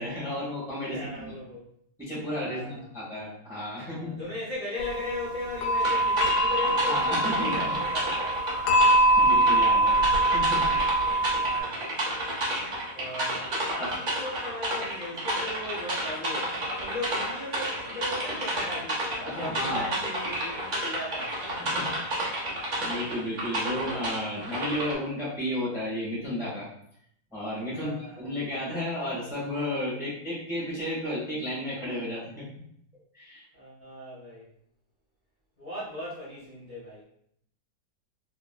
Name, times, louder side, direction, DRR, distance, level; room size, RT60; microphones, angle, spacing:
voice 1, 0.0-1.3 2.0-4.2 6.9-7.7 8.8-10.0 10.3-10.7 11.2-11.3 13.8-13.9 19.2-20.0 21.6-21.9 22.3-26.7 27.3-32.4 33.1-33.4, left 1 dB, ahead, -8 dB, 0.8 m, -33 dB
voice 2, 0.9-1.6 2.4-2.9 3.8-8.3 11.3-12.0 12.9-21.3 27.7-28.3 33.5-34.5 35.6-37.0, left 1 dB, 35° left, -10 dB, 0.8 m, -38 dB
sound 1, 4.8-11.6, right 2 dB, 75° left, 1.2 m, -23 dB
sound 2, 5.8-24.9, right 1 dB, 80° right, 0.4 m, -31 dB
2.9 x 2.9 x 2.2 m, 0.70 s
omnidirectional pair, 2.1 m